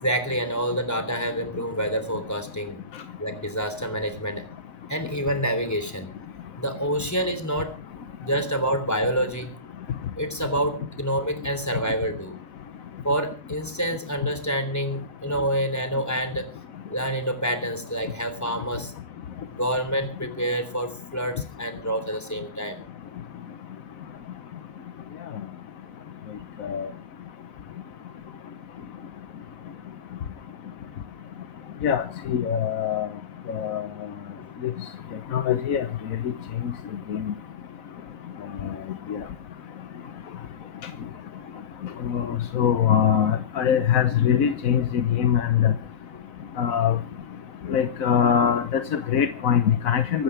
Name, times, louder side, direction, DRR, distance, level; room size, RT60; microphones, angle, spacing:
voice 1, 0.0-2.8 3.2-4.5 4.9-6.1 6.6-7.8 8.2-9.6 10.2-12.4 13.0-16.5 16.9-18.9 19.5-22.8 34.4-34.5 46.1-46.2 47.7-47.8, right 1 dB, 10° left, 8 dB, 3.3 m, -27 dB
voice 2, 31.8-33.1 33.5-33.8 34.6-34.7 35.3-35.9 37.1-37.2 42.0-45.7 46.6-47.0 47.7-50.2, left 8 dB, 85° left, 9 dB, 1.4 m, -22 dB
25.5 x 12.5 x 3.3 m, 0.37 s
omnidirectional pair, 1.4 m